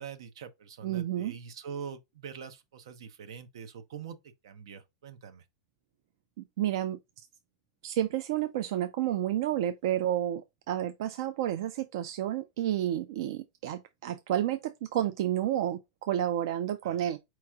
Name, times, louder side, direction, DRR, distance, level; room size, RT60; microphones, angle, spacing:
voice 1, 0.0-4.2 4.4-5.4 16.8-17.1, right 7 dB, 85° right, 0.9 m, -44 dB
voice 2, 0.8-1.3 6.4-7.0 7.8-17.2, right 12 dB, 65° right, 0.5 m, -30 dB
4.6 x 3.1 x 3.6 m
supercardioid pair, 160°, 3 cm